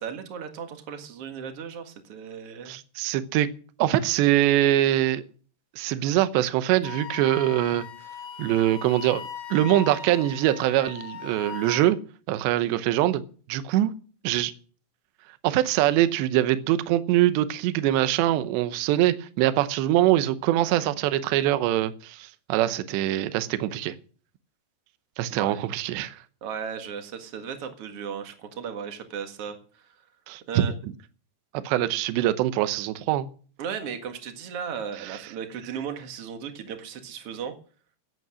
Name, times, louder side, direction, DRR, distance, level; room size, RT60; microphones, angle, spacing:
voice 1, 0.0-2.7 25.3-25.6 26.4-29.9 30.5-30.7 33.6-37.5, right 7 dB, 55° right, 6 dB, 1.7 m, -36 dB
voice 2, 2.7-3.5 3.8-5.2 5.8-7.9 8.4-12.0 12.3-13.2 13.5-13.9 14.2-14.5 15.4-23.9 25.2-26.2 30.3-30.6 31.6-33.3, right 14 dB, 80° right, 12 dB, 3.0 m, -23 dB
Wind instrument woodwind instrument, 6.8-12.0, left 7 dB, 65° left, 2.3 m, -39 dB
17.0 x 8.4 x 6.3 m, 0.41 s
omnidirectional pair, 5.2 m